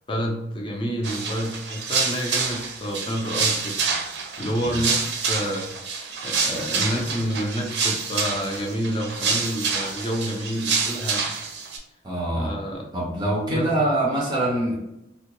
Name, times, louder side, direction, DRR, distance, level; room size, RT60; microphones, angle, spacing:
voice 1, 0.1-3.8 4.4-5.7 6.2-11.2 12.3-12.9 13.5-13.7, equal, 25° left, 1 dB, 0.6 m, -28 dB
sound 1, 1.0-11.8, right 5 dB, 65° right, 0.6 m, -27 dB
voice 2, 12.0-12.5 12.9-14.8, right 1 dB, 20° right, -3 dB, 0.5 m, -24 dB
3.5 x 2.1 x 3.0 m, 0.91 s
head